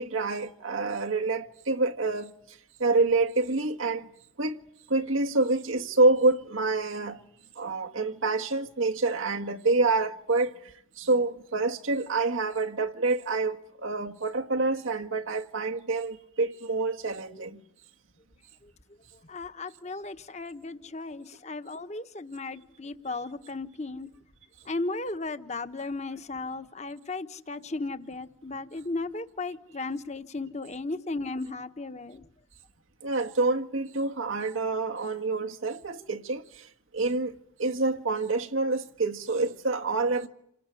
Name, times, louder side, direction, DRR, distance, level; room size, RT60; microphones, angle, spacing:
voice 1, 0.0-2.3 2.8-4.1 4.4-4.6 4.9-7.2 7.5-17.6 33.0-36.7 36.9-40.3, right 3 dB, 80° right, 1.7 m, -27 dB
voice 2, 19.1-24.1 24.6-32.3, left 3 dB, 35° left, 1.3 m, -35 dB
29.0 x 19.5 x 9.9 m
head